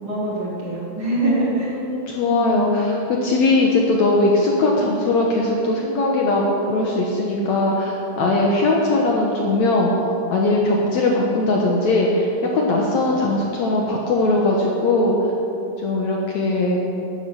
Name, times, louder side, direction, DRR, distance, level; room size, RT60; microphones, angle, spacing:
voice 1, 0.0-1.9 2.2-2.9, right 1 dB, 40° right, -5 dB, 2.3 m, -24 dB
voice 2, 1.9-3.0 3.2-9.9 10.3-12.3 12.5-15.2 15.8-16.8, left 2 dB, 65° left, -2 dB, 2.0 m, -20 dB
11.0 x 9.7 x 6.8 m, 2.7 s
omnidirectional pair, 4.2 m